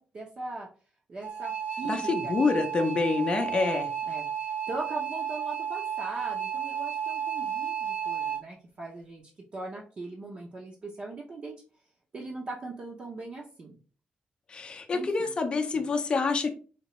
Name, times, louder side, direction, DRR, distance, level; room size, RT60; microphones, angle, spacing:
voice 1, 0.1-0.7 1.1-3.3 3.5-11.6 12.1-13.8 14.9-15.3 15.7-15.9, right 2 dB, 35° right, -2 dB, 0.6 m, -40 dB
sound 1, 1.2-8.4, right 8 dB, 65° right, 1.4 m, -32 dB
voice 2, 1.9-3.9 14.5-16.5, left 4 dB, 30° left, 4 dB, 0.5 m, -27 dB
4.3 x 2.9 x 3.0 m, 0.38 s
wide cardioid pair, 180°, 3 cm